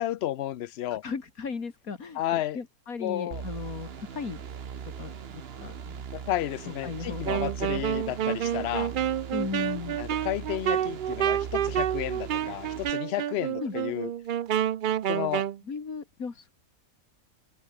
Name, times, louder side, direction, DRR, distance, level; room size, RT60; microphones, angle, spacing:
voice 1, 0.0-1.0 2.1-2.6 3.0-3.4 6.1-8.9 10.0-14.1 15.1-15.5, left 13 dB, 60° left, 0.7 m, -32 dB
voice 2, 0.9-4.4 5.0-6.1 6.7-7.9 9.3-10.0 13.6-13.7 15.6-16.6, left 5 dB, 90° left, 2.7 m, -37 dB
sound 1, 3.3-12.9, right 7 dB, 50° right, 1.1 m, -40 dB
Wind instrument woodwind instrument, 7.2-15.6, right 10 dB, 65° right, 0.5 m, -29 dB
omnidirectional pair, 1.5 m